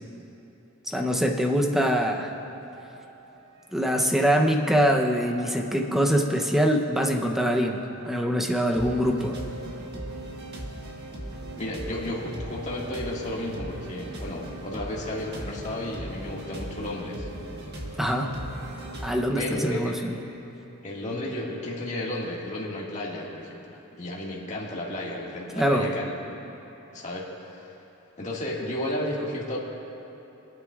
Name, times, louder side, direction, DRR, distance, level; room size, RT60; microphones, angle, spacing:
voice 1, 0.9-2.3 3.7-9.4 18.0-18.4 19.0-20.2 25.6-25.9, equal, ahead, 2 dB, 0.7 m, -24 dB
sound 1, 2.4-3.5 3.8-8.2 8.7-19.1, right 1 dB, 50° right, 1.5 m, -39 dB
voice 2, 11.6-17.3 19.3-19.9 20.8-26.1 26.9-27.3 27.5-27.7 28.2-29.6, left 1 dB, 35° left, -4 dB, 1.9 m, -33 dB
26.0 x 9.2 x 2.4 m, 3.0 s
head